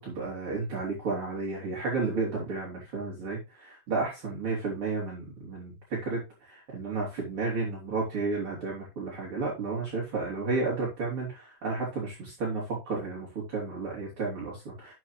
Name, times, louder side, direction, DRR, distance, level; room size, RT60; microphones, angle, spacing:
voice 1, 0.0-14.9, right 3 dB, 30° right, -5 dB, 3.9 m, -32 dB
12.0 x 7.4 x 3.3 m, 0.26 s
omnidirectional pair, 5.2 m